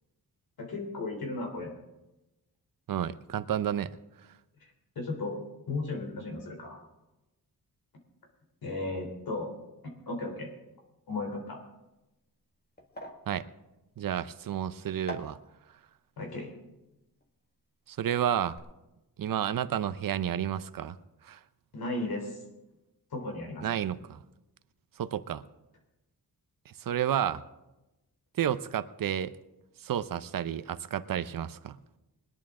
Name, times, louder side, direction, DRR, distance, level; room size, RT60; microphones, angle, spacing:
voice 1, 0.6-1.7 4.9-5.4 5.7-6.8 8.6-9.5 9.8-10.5 11.1-11.6 16.2-16.6 21.7-22.4 23.1-23.7, left 2 dB, 75° left, 2 dB, 3.4 m, -35 dB
voice 2, 2.9-3.9 13.3-13.5 14.0-15.4 17.9-18.5 19.2-20.9 21.2-21.4 23.6-24.2 25.0-25.4 26.7-27.4 28.4-29.3 29.8-31.8, right 10 dB, 65° right, 13 dB, 0.7 m, -31 dB
sound 1, 11.8-18.0 18.3-18.6, left 1 dB, 25° left, 1.7 m, -48 dB
20.5 x 10.5 x 3.7 m, 1.0 s
cardioid pair, 90°, 37 cm